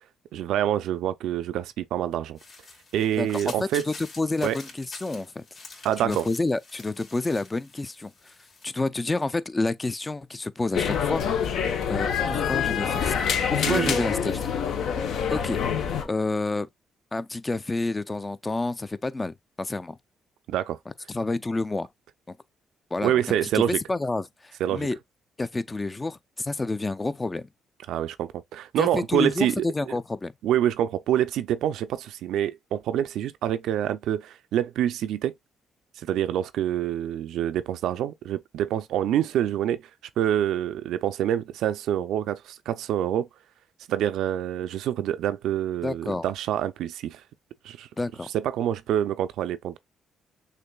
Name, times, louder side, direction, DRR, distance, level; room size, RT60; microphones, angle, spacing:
voice 1, 0.3-2.4 2.9-3.9 4.4-4.6 5.8-6.3 13.7-14.0 20.5-20.8 23.0-23.8 24.6-24.9 27.9-29.7 30.4-35.3 36.0-39.8 40.2-43.3 43.9-47.2 47.6-47.9 48.3-49.8, right 11 dB, 80° right, 0.4 m, -26 dB
sound 1, 2.4-8.7, left 3 dB, 50° left, 2.5 m, -46 dB
voice 2, 3.2-5.4 6.0-8.1 8.6-11.2 11.9-13.2 13.5-14.5 15.3-16.7 17.1-20.0 21.1-21.9 22.3-22.4 22.9-23.6 23.9-25.0 25.4-27.5 28.8-30.3 45.8-46.3 48.0-48.3, left 2 dB, 20° left, 0.4 m, -29 dB
sound 2, 10.7-16.0, left 7 dB, 75° left, 0.8 m, -26 dB
6.5 x 2.5 x 2.3 m
cardioid pair, 90°, 0 cm